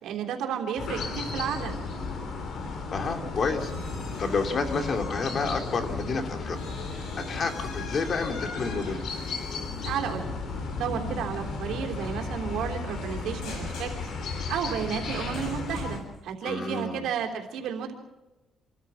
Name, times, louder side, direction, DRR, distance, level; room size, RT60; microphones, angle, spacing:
voice 1, 0.0-1.7 9.8-10.3 10.8-13.9 14.5-17.9, right 8 dB, 85° right, 3 dB, 3.3 m, -32 dB
sound 1, 0.8-16.0, left 3 dB, 70° left, 4.1 m, -34 dB
voice 2, 2.9-3.7 4.2-6.6 7.2-9.0 16.4-17.1, left 4 dB, 50° left, 5 dB, 2.8 m, -29 dB
sound 2, 3.6-6.0 6.2-16.2, left 4 dB, 90° left, 6.2 m, -46 dB
27.0 x 13.5 x 7.5 m, 1.1 s
cardioid pair, 90°, 0 cm